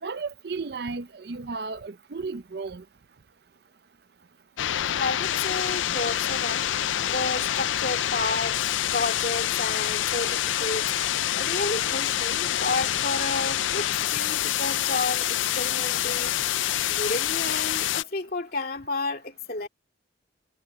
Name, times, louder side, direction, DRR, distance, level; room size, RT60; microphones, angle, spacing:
voice 1, 0.0-2.8, right 4 dB, 55° right, 0.6 m, -34 dB
sound 1, 4.6-18.0, left 12 dB, 85° left, 0.4 m, -26 dB
voice 2, 4.6-6.7 7.1-8.6 8.9-11.0 11.4-16.3 16.9-19.7, left 3 dB, 50° left, 2.4 m, -31 dB
head